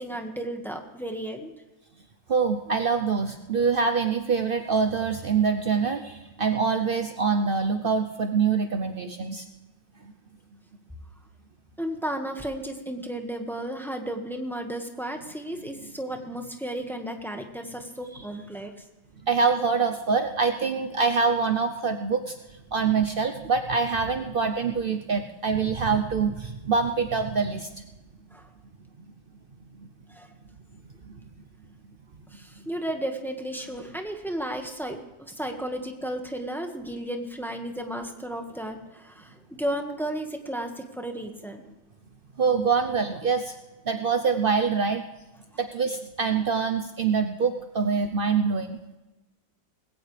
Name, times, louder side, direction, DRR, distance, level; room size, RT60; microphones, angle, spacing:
voice 1, 0.0-1.5 11.8-18.8 28.3-28.5 30.1-30.3 32.3-41.7, right 1 dB, ahead, 3 dB, 1.4 m, -34 dB
voice 2, 2.3-9.5 10.0-10.1 19.3-22.4 22.7-27.7 29.8-29.9 31.0-31.2 42.4-43.5 43.9-45.1 45.6-48.8, right 5 dB, 75° right, 6 dB, 0.5 m, -25 dB
20.0 x 17.0 x 3.4 m, 1.1 s
omnidirectional pair, 2.1 m